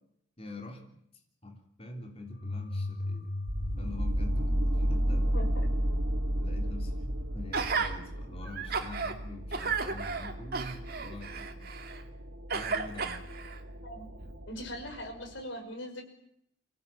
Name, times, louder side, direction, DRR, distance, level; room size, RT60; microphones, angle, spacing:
voice 1, 0.4-0.9 1.4-3.3 3.8-5.3 6.4-11.3 11.6-11.7 12.5-13.2, left 2 dB, 30° left, 3 dB, 3.4 m, -45 dB
sound 1, 2.3-5.2, left 2 dB, 80° left, 5.2 m, -38 dB
sound 2, 3.5-15.4, equal, 75° right, 3.0 m, -33 dB
Gasp, 7.5-7.9 8.5-9.1 9.5-12.0 12.5-13.6 14.2-14.3, right 5 dB, 50° right, 2.3 m, -33 dB
voice 2, 14.5-16.0, equal, 65° left, 4 dB, 5.8 m, -40 dB
25.0 x 17.0 x 8.8 m, 0.73 s
head